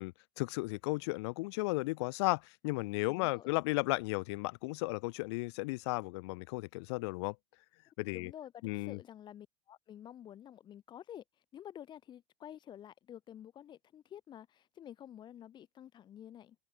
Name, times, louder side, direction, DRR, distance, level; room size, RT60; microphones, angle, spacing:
voice 1, 0.0-7.4 8.0-8.3 8.6-9.0, left 25 dB, 70° left, 0.9 m, -34 dB
voice 2, 3.1-3.5 8.1-16.6, left 10 dB, 30° left, 5.8 m, -50 dB
open air
supercardioid pair, 145°, 15 cm